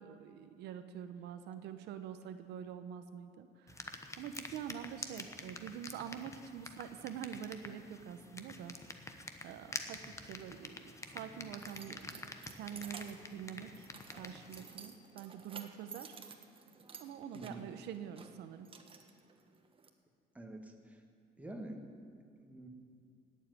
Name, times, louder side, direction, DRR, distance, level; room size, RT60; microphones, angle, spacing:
voice 1, 0.0-8.7 9.1-12.0 12.6-13.9 14.2-16.1 17.0-18.7, right 9 dB, 80° right, 9 dB, 0.9 m, -46 dB
sound 1, 3.7-14.8, left 2 dB, 15° left, 1.0 m, -48 dB
Keys jangling, 10.8-19.9, right 5 dB, 30° right, 1.2 m, -54 dB
voice 2, 17.3-17.7 20.4-21.0 21.4-21.8 22.4-22.7, right 1 dB, 10° right, 2 dB, 1.8 m, -47 dB
17.5 x 7.5 x 9.6 m, 2.3 s
cardioid pair, 110°, 17 cm